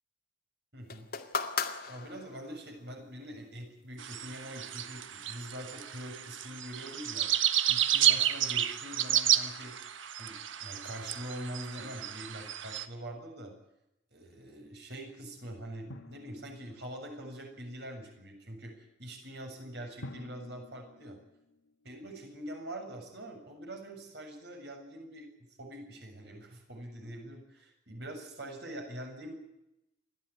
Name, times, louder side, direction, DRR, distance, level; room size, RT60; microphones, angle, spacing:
voice 1, 0.7-1.1 1.9-7.3 7.7-9.8 10.2-13.5 14.1-21.2 21.8-25.3 25.6-29.4, right 1 dB, 55° right, 2 dB, 7.2 m, -44 dB
sound 1, 0.9-2.6 3.6-3.7, left 5 dB, 50° left, 2.1 m, -36 dB
sound 2, 4.0-12.8, right 11 dB, 80° right, 1.3 m, -31 dB
Drum, 15.9-17.4 20.0-22.2, left 1 dB, 85° left, 2.0 m, -50 dB
29.0 x 12.0 x 9.9 m, 0.87 s
head